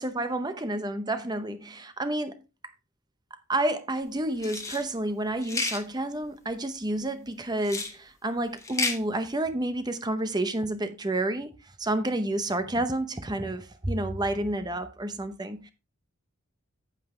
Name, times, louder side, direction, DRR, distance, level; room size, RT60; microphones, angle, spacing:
voice 1, 0.0-2.4 3.5-11.5 11.8-15.7, right 1 dB, 20° right, 0.7 m, -30 dB
sound 1, 4.4-4.8 5.4-5.8 7.6-7.9 8.6-9.0, left 4 dB, 15° left, 1.1 m, -31 dB
9.2 x 8.0 x 3.2 m
head